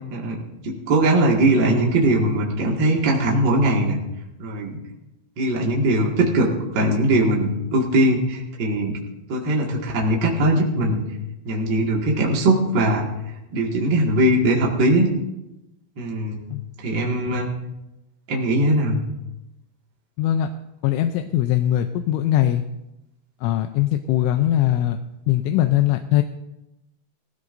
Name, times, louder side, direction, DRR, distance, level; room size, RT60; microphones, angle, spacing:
voice 1, 0.1-4.0 4.4-4.8 5.4-9.0 9.3-11.0 11.4-13.1 13.5-15.1 16.0-16.4 16.8-17.5 18.3-19.0, right 1 dB, 65° right, -2 dB, 1.1 m, -20 dB
voice 2, 20.2-20.5 20.8-22.6 23.4-25.0 25.3-26.2, left 12 dB, 80° left, 7 dB, 2.9 m, -21 dB
20.0 x 16.0 x 2.6 m, 0.93 s
omnidirectional pair, 5.6 m